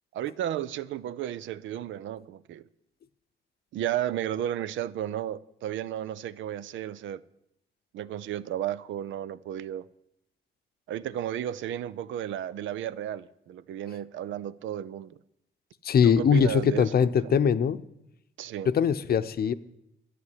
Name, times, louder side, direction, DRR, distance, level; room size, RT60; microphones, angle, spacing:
voice 1, 0.1-2.6 3.7-7.2 7.9-9.9 10.9-15.2 16.0-17.3 18.4-18.7, right 11 dB, 75° right, 0.6 m, -33 dB
voice 2, 15.8-17.8 18.7-19.5, left 7 dB, 50° left, 0.7 m, -22 dB
11.0 x 8.0 x 9.9 m
cardioid pair, 90°, 20 cm